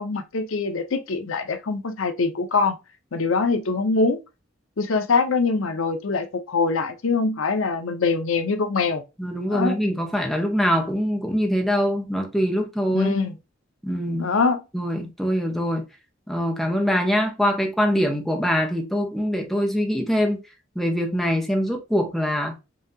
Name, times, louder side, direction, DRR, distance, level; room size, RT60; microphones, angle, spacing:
voice 1, 0.0-2.8 3.1-4.2 4.8-9.0 9.5-9.8 12.9-13.4 14.2-14.6, left 4 dB, 85° left, 0.7 m, -23 dB
voice 2, 9.2-13.1 13.8-14.3 14.7-15.8 16.3-20.4 20.7-22.6, equal, ahead, 0.9 m, -23 dB
5.5 x 2.7 x 2.7 m
head